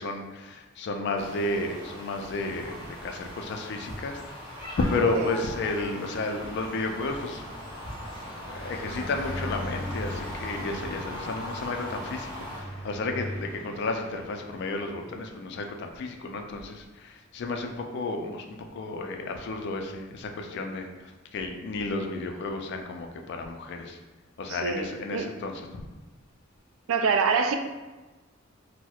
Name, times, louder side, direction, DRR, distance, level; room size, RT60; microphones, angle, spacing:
voice 1, 0.0-4.5 4.9-7.4 8.5-24.0 24.4-25.8, left 2 dB, 55° left, 4 dB, 0.3 m, -32 dB
sound 1, 1.2-12.6, left 1 dB, 25° left, 0.7 m, -40 dB
Car passing by, 4.7-15.5, equal, 10° left, 1.0 m, -40 dB
voice 2, 24.5-25.3 26.9-27.5, right 5 dB, 85° right, 6 dB, 0.3 m, -25 dB
4.2 x 2.0 x 2.3 m, 1.2 s
head